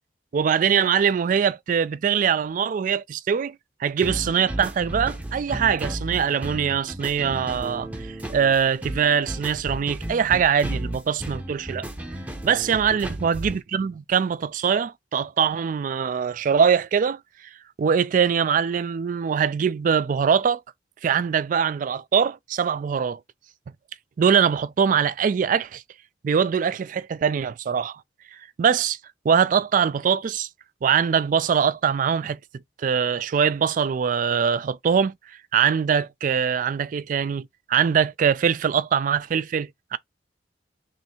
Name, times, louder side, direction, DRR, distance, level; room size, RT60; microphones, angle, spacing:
voice 1, 0.3-3.6 3.8-11.9 12.4-17.2 17.8-20.6 21.0-23.2 24.2-25.8 26.2-28.0 28.6-29.0 29.3-30.5 30.8-32.4 32.8-35.1 35.5-40.0, right 7 dB, 45° right, 0.3 m, -22 dB
sound 1, 4.0-13.6, right 1 dB, 10° right, 0.7 m, -34 dB
3.1 x 2.6 x 4.3 m
head